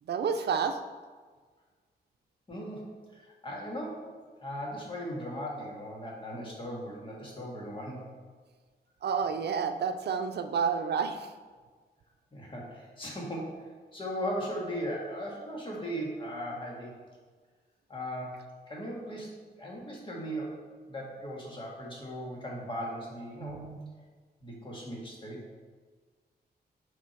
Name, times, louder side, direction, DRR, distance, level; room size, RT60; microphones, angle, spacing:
voice 1, 0.1-0.8 9.0-11.3 23.4-23.8, right 6 dB, 80° right, 8 dB, 0.6 m, -30 dB
voice 2, 2.5-4.1 4.4-8.0 12.3-13.6 13.9-17.0 17.9-18.4 18.7-23.6 24.4-25.4, equal, 30° left, -3 dB, 1.8 m, -38 dB
6.0 x 6.0 x 4.5 m, 1.5 s
wide cardioid pair, 140°, 17 cm